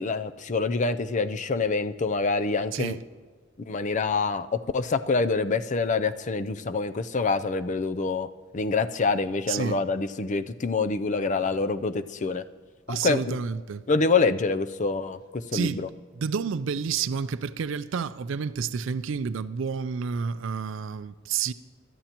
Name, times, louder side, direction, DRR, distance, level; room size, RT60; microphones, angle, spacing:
voice 1, 0.0-3.0 3.7-8.3 8.5-12.4 12.9-13.4 13.9-15.9, left 4 dB, 40° left, 0.5 m, -26 dB
voice 2, 9.5-9.8 12.9-13.8 15.5-15.9 16.1-21.5, right 6 dB, 65° right, 0.4 m, -29 dB
25.0 x 13.0 x 3.0 m
head